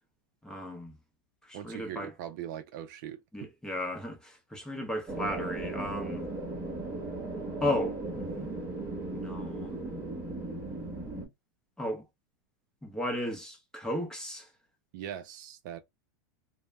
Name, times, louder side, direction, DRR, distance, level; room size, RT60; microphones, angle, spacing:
voice 1, 0.4-0.9 1.5-2.1 3.3-6.3 7.6-8.5 9.1-9.7 11.8-12.0 12.8-14.5, left 1 dB, 5° left, 0.6 m, -35 dB
voice 2, 1.5-3.2 14.9-15.8, right 10 dB, 60° right, 0.4 m, -40 dB
sound 1, 5.1-11.3, right 2 dB, 15° right, 1.0 m, -37 dB
2.1 x 2.0 x 3.2 m
supercardioid pair, 130°, 11 cm